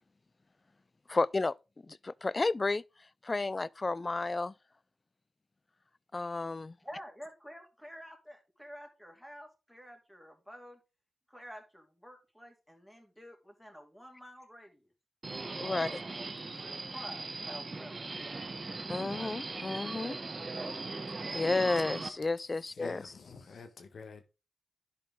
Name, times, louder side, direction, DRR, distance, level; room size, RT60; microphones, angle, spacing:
voice 1, 1.1-1.5 1.9-2.8 3.2-4.5 6.1-6.7 15.6-16.0 18.9-20.2 21.3-23.0, left 3 dB, 40° left, 0.3 m, -32 dB
voice 2, 6.8-10.8 11.3-14.9 15.7-15.9 16.3-18.4, equal, 5° left, 2.9 m, -50 dB
Subway metro underground, 15.2-22.1, right 3 dB, 45° right, 1.1 m, -39 dB
voice 3, 22.6-24.2, left 4 dB, 75° left, 1.4 m, -48 dB
11.0 x 5.0 x 3.7 m
cardioid pair, 45°, 0 cm